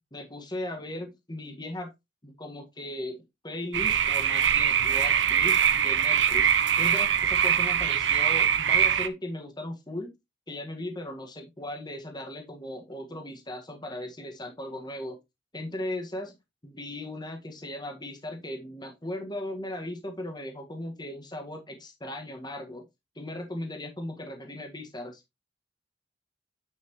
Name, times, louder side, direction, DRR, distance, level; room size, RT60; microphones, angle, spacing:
voice 1, 0.1-1.9 2.2-3.2 3.4-6.5 6.8-10.1 10.5-15.2 15.5-16.3 16.6-22.8 23.2-25.2, left 1 dB, 25° left, 1.8 m, -37 dB
sound 1, 3.7-9.1, right 8 dB, 70° right, 0.8 m, -23 dB
9.3 x 5.9 x 3.1 m
head